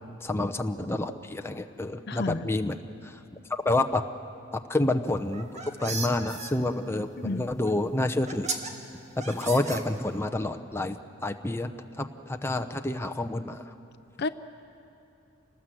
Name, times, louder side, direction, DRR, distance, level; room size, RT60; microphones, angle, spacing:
voice 1, 0.2-2.8 3.0-3.2 3.6-4.0 4.5-5.5 5.8-8.5 9.3-11.7 12.0-13.6, left 2 dB, 10° left, 7 dB, 0.7 m, -28 dB
voice 2, 2.1-2.5 7.2-7.5 14.2-14.3, left 3 dB, 55° left, 12 dB, 0.6 m, -31 dB
sound 1, 5.2-6.5 7.7-7.8 8.3-8.7 9.2-10.3, right 4 dB, 35° right, 1.7 m, -35 dB
27.5 x 19.0 x 7.6 m, 2.9 s
head